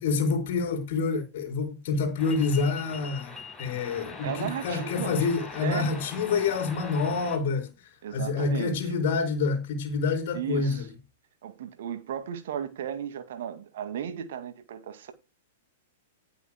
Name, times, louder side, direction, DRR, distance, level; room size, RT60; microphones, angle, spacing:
voice 1, 0.0-7.7 8.1-10.9, left 4 dB, 45° left, 4.6 m, -27 dB
sound 1, 2.2-7.4, left 3 dB, 5° left, 6.0 m, -42 dB
voice 2, 4.2-5.2 5.6-5.9 8.0-8.9 10.3-10.9 11.4-15.1, right 9 dB, 55° right, 2.1 m, -35 dB
18.5 x 7.1 x 2.2 m
figure-of-eight pair, 100°, 0 cm